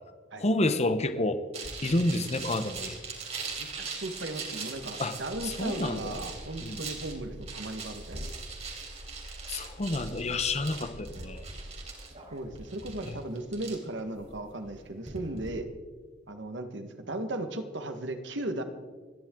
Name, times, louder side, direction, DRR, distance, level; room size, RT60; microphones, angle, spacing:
voice 1, 0.4-1.4 1.8-3.0 5.0-5.1 5.4-6.2 6.6-6.8 9.5-11.4 13.1-13.2, left 2 dB, 35° left, 10 dB, 0.9 m, -29 dB
sound 1, 1.5-15.5, right 4 dB, 40° right, 3.5 m, -41 dB
voice 2, 3.6-8.3 12.3-15.7 16.3-18.6, right 2 dB, 75° right, 8 dB, 1.5 m, -36 dB
sound 2, 5.3-11.7, right 1 dB, 80° left, 3.8 m, -47 dB
28.5 x 10.5 x 3.8 m, 1.5 s
head